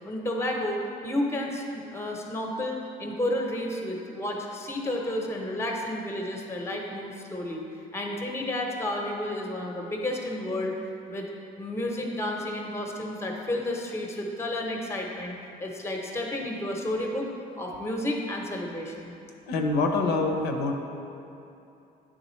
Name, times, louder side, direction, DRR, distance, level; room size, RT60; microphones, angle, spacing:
voice 1, 0.0-7.6 7.9-10.7 11.1-11.3 11.6-17.3 17.6-19.1, left 1 dB, 15° left, 0 dB, 0.8 m, -31 dB
voice 2, 19.5-20.7, left 3 dB, 75° left, 2 dB, 0.6 m, -25 dB
9.2 x 3.6 x 3.1 m, 2.8 s
cardioid pair, 110°, 17 cm